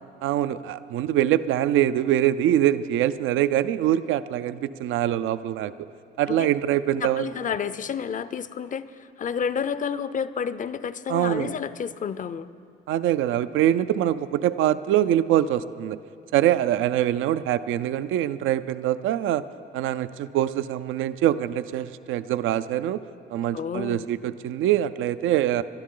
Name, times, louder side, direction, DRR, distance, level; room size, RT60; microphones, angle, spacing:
voice 1, 0.2-5.7 6.2-7.2 11.1-11.5 12.9-16.0 16.3-19.4 19.7-23.0 23.3-25.6, right 12 dB, 85° right, 14 dB, 0.4 m, -24 dB
voice 2, 7.0-8.9 9.2-12.5 23.5-24.1, left 7 dB, 40° left, 15 dB, 0.5 m, -30 dB
21.5 x 12.5 x 3.8 m, 2.5 s
cardioid pair, 90°, 20 cm